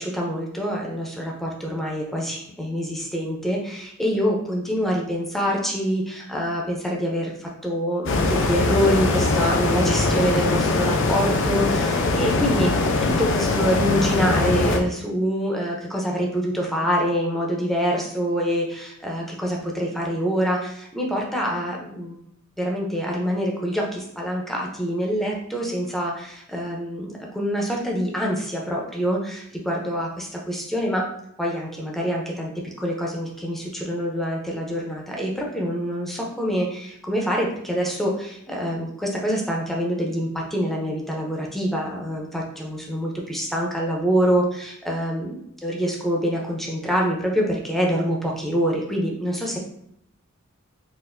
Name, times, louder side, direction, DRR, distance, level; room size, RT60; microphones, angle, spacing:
voice 1, 0.0-12.7 13.0-22.2 22.6-31.1 31.4-49.6, equal, ahead, -1 dB, 0.6 m, -25 dB
sound 1, 8.1-14.8, left 3 dB, 60° left, 0.4 m, -22 dB
4.0 x 2.5 x 2.6 m, 0.75 s
head